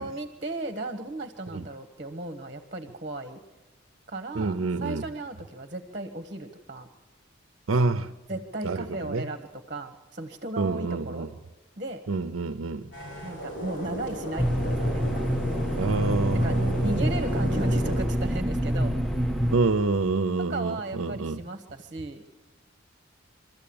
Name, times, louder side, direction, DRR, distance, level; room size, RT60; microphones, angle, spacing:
voice 1, 0.0-3.4 4.1-6.9 8.3-11.3 11.8-12.0 13.2-15.1 16.3-19.0 20.5-22.2, right 2 dB, 40° right, 1.2 m, -35 dB
voice 2, 4.3-5.0 7.7-8.1 8.6-9.2 10.6-11.3 12.1-12.9 15.8-17.1 19.5-21.4, right 3 dB, 85° right, 0.6 m, -27 dB
sound 1, 12.9-18.0, equal, 55° left, 7.2 m, -35 dB
sound 2, 14.4-19.6, equal, ahead, 0.8 m, -26 dB
24.0 x 13.5 x 8.7 m
head